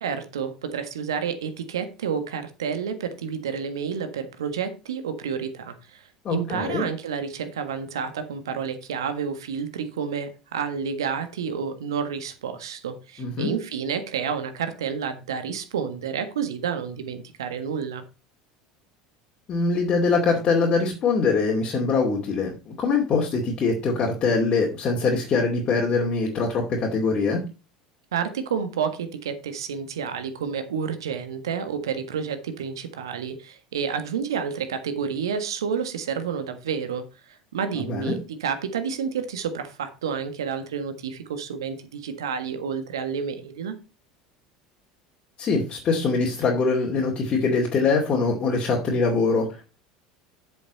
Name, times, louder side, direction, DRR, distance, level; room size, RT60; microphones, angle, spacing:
voice 1, 0.0-18.0 28.1-43.7, right 6 dB, 75° right, 9 dB, 1.5 m, -30 dB
voice 2, 6.2-6.8 13.2-13.5 19.5-27.4 37.8-38.2 45.4-49.8, left 4 dB, 40° left, -1 dB, 2.4 m, -23 dB
7.8 x 7.1 x 4.2 m, 0.31 s
hypercardioid pair, 75°, 2 cm